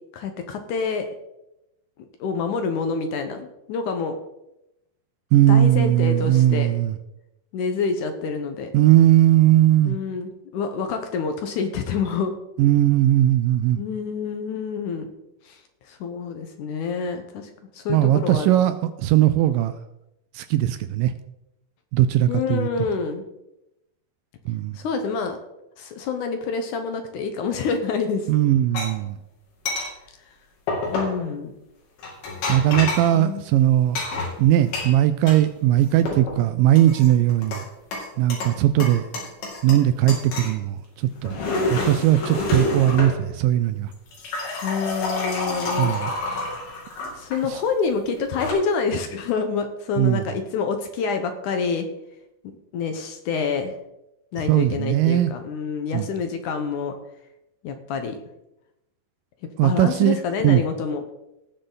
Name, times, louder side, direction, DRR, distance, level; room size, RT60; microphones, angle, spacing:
voice 1, 0.1-1.1 2.2-4.2 5.5-6.7 7.5-8.7 9.8-12.4 13.8-15.1 15.5-15.6 15.9-18.5 22.3-23.2 24.8-25.4 25.8-28.3 30.9-31.5 33.1-33.4 44.6-46.2 47.1-51.9 52.4-53.8 54.3-56.9 57.6-58.2 59.6-61.0, left 5 dB, 70° left, 6 dB, 2.1 m, -27 dB
voice 2, 5.3-7.0 8.7-10.0 12.6-13.8 17.9-19.7 20.4-21.1 21.9-22.7 24.5-24.8 28.3-29.2 32.5-34.0 34.4-37.6 38.2-39.0 39.6-41.4 41.7-43.9 45.8-46.1 47.5-47.6 50.0-50.2 54.4-55.3 55.9-56.1 59.6-60.2 60.4-60.6, right 13 dB, 80° right, 11 dB, 2.1 m, -19 dB
sound 1, 28.7-28.9 29.7-29.9 30.7-31.2 32.0-33.1 33.9-35.4 35.8-36.4 36.8-37.6 37.9-38.5 38.8-39.8 40.1-40.5 41.1-43.2 43.9-47.4 48.2-48.5, left 2 dB, 90° left, 4.4 m, -28 dB
18.5 x 6.7 x 3.9 m, 0.88 s
omnidirectional pair, 4.3 m